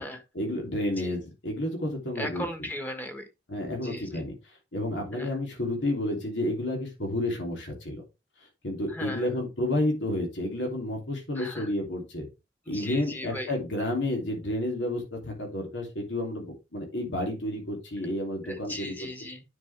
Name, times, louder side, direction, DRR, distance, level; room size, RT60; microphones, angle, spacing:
voice 1, 0.3-2.5 3.5-4.3 4.7-8.0 8.6-12.3 12.7-16.5 16.7-19.1, left 1 dB, 85° left, 1 dB, 3.2 m, -30 dB
voice 2, 2.2-3.2 3.8-4.1 5.1-5.3 8.9-9.3 11.4-11.7 12.7-13.5 18.4-19.4, left 1 dB, 10° left, 6 dB, 1.4 m, -37 dB
9.7 x 5.5 x 3.4 m, 0.26 s
head